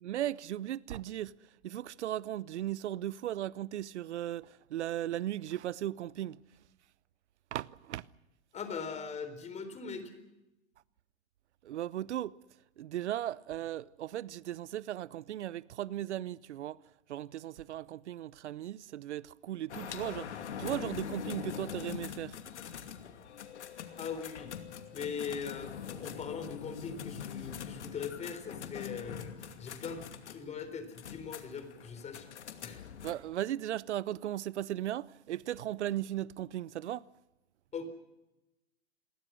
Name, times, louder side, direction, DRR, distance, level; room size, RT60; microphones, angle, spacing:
voice 1, 0.0-1.3 1.6-6.4 7.5-8.1 11.6-12.3 12.8-16.8 17.1-22.4 33.0-37.1, right 12 dB, 80° right, 0.7 m, -37 dB
voice 2, 8.5-10.1 24.0-24.5 24.9-32.3 32.6-32.8 37.7-37.8, left 6 dB, 20° left, 4.0 m, -41 dB
sound 1, 19.7-33.1, left 8 dB, 80° left, 2.7 m, -43 dB
27.5 x 22.5 x 6.3 m
hypercardioid pair, 130°, 34 cm